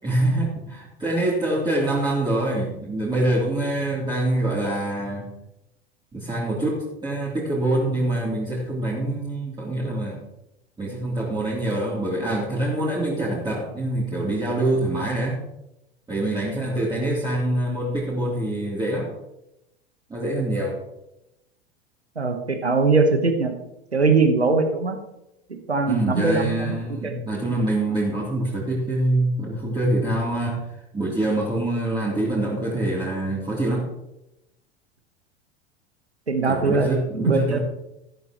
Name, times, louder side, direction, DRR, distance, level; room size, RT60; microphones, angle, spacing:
voice 1, 0.0-5.3 6.1-10.2 10.8-15.4 16.1-19.1 20.1-20.8 25.9-30.7 30.9-33.9 36.5-37.6, right 1 dB, 15° right, -6 dB, 3.3 m, -25 dB
voice 2, 22.2-23.5 23.9-25.0 25.5-26.7 27.0-27.1 36.3-37.6, right 4 dB, 90° right, 6 dB, 1.3 m, -21 dB
14.0 x 12.5 x 3.0 m, 0.89 s
figure-of-eight pair, 85°, 32 cm